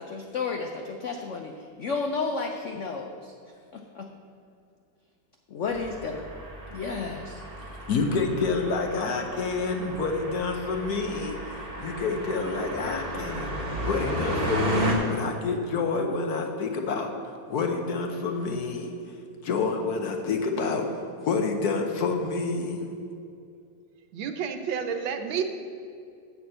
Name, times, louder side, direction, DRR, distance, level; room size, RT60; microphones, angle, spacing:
voice 1, 0.0-3.3 3.7-4.1 5.5-6.2 6.7-7.4, left 4 dB, 85° left, 3 dB, 0.6 m, -32 dB
sound 1, 5.7-14.9, equal, 30° right, 1.7 m, -33 dB
voice 2, 7.6-13.5 13.8-18.9 19.4-22.9, left 4 dB, 60° left, 4 dB, 1.3 m, -28 dB
voice 3, 24.1-25.5, right 7 dB, 90° right, 7 dB, 1.5 m, -30 dB
7.0 x 6.2 x 7.7 m, 2.4 s
omnidirectional pair, 2.1 m